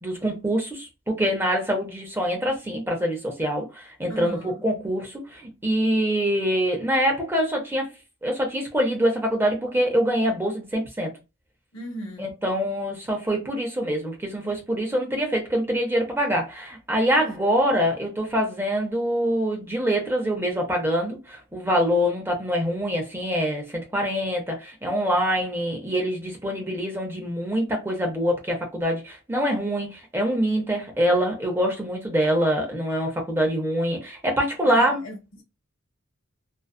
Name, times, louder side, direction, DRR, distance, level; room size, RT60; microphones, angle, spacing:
voice 1, 0.0-7.9 8.2-11.1 12.2-35.0, equal, 10° right, 0.6 m, -25 dB
voice 2, 4.1-4.6 11.7-12.4 34.6-35.4, equal, 70° left, 1.0 m, -36 dB
2.5 x 2.3 x 2.3 m
head